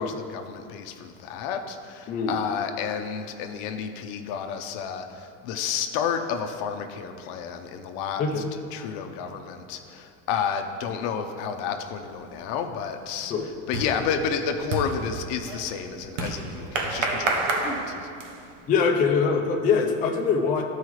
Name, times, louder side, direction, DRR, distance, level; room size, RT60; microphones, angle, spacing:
voice 1, 0.0-8.2 8.7-13.3 13.7-18.1, left 7 dB, 60° left, 6 dB, 0.7 m, -31 dB
voice 2, 2.1-2.4 8.2-8.5 13.3-13.5 18.7-20.6, left 5 dB, 20° left, 1 dB, 0.5 m, -23 dB
sound 1, 12.1-12.5 12.8-18.6, right 3 dB, 85° right, 1.2 m, -30 dB
12.5 x 4.8 x 3.2 m, 2.5 s
supercardioid pair, 150°, 37 cm